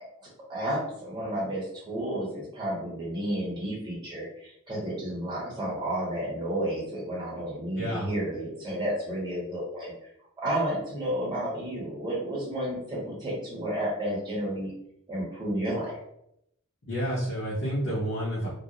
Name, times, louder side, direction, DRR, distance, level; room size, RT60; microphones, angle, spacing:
voice 1, 0.2-9.9 10.4-14.7 15.1-16.0, right 1 dB, 20° right, -5 dB, 0.9 m, -31 dB
voice 2, 7.8-8.1 16.9-18.5, equal, 60° left, -8 dB, 0.7 m, -29 dB
2.3 x 2.0 x 2.7 m, 0.78 s
head